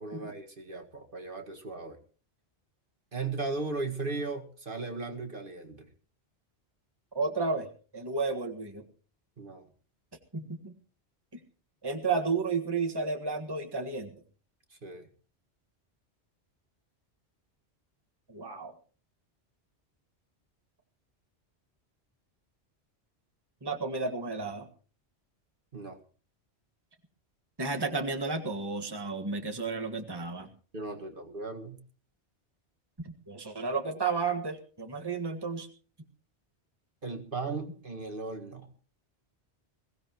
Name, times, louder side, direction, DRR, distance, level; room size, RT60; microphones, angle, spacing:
voice 1, 0.0-2.0 3.1-5.9 9.4-9.7 14.7-15.1 25.7-26.0 30.7-31.8 37.0-38.7, right 3 dB, 50° right, 4 dB, 2.0 m, -37 dB
voice 2, 7.1-7.7 7.9-8.8 10.3-10.7 11.8-14.1 18.3-18.7 23.6-24.7 27.6-30.5 33.3-35.7, right 4 dB, 20° right, 4 dB, 1.7 m, -32 dB
22.0 x 16.5 x 3.0 m, 0.39 s
omnidirectional pair, 1.2 m